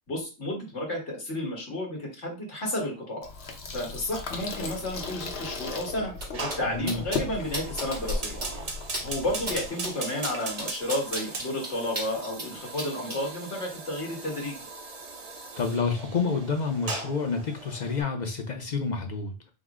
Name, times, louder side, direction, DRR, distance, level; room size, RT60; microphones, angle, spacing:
voice 1, 0.1-3.3 3.7-8.7 9.0-14.6, left 1 dB, 85° left, 1.9 m, -32 dB
Water tap faucet / Sink (filling or washing), 3.2-9.7, left 4 dB, 65° left, 1.0 m, -36 dB
sound 1, 6.1-6.2 6.5-6.6 6.9-7.2 7.5-8.1 8.4-8.5 8.9-9.0 9.4-9.5 9.8-12.5 12.8-13.2, right 1 dB, 85° right, 2.5 m, -34 dB
Fire, 6.3-18.0, right 3 dB, 40° right, 0.6 m, -39 dB
voice 2, 6.7-7.0 15.6-19.3, left 4 dB, 50° left, 0.6 m, -29 dB
5.4 x 2.0 x 3.6 m
omnidirectional pair, 1.2 m